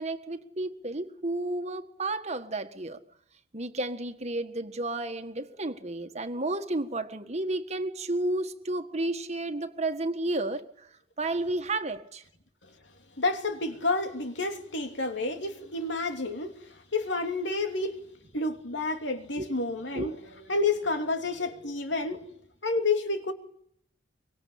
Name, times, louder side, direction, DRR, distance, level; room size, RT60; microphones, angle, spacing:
voice 1, 0.0-3.0 3.5-10.9 11.2-12.2 19.4-19.5 19.9-20.1, right 2 dB, 35° right, 1.7 m, -32 dB
voice 2, 13.2-16.5 16.9-18.0 18.3-20.1 20.5-22.3 22.6-23.3, left 3 dB, 75° left, 3.1 m, -29 dB
25.0 x 23.5 x 8.7 m
head